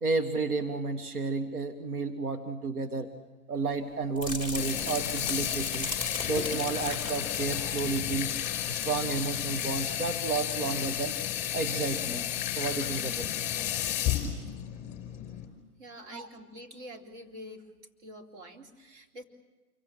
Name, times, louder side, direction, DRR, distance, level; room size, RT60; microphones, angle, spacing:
voice 1, 0.0-3.1 3.5-5.9 6.2-8.3 8.7-11.1 11.5-12.3 12.6-13.3 16.1-16.3, right 4 dB, 80° right, 7 dB, 2.3 m, -31 dB
sound 1, 4.2-9.0 9.3-9.6 10.1-10.2, left 3 dB, 10° right, 4.1 m, -38 dB
Water tap faucet / Sink (filling or washing), 4.5-15.4, left 11 dB, 15° left, 5.1 m, -32 dB
voice 2, 15.8-17.6 18.0-19.2, equal, 45° right, 1 dB, 3.8 m, -46 dB
28.0 x 24.0 x 7.6 m, 1.3 s
hypercardioid pair, 140°, 44 cm